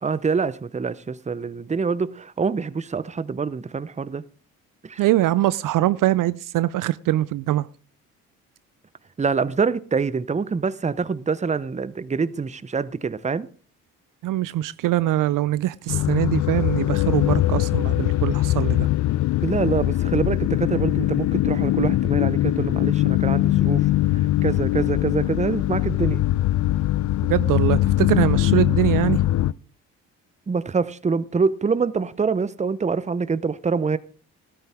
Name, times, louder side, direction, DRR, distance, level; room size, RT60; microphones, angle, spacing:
voice 1, 0.0-4.2 4.8-5.0 9.2-13.5 19.4-23.9 24.4-26.2 30.5-34.0, right 5 dB, 20° right, 0.7 m, -25 dB
voice 2, 5.0-7.7 14.2-18.9 27.3-29.2, right 15 dB, 60° right, 0.5 m, -23 dB
sound 1, 15.9-29.5, left 15 dB, 55° left, 0.5 m, -21 dB
13.0 x 12.5 x 3.5 m
supercardioid pair, 55°, 36 cm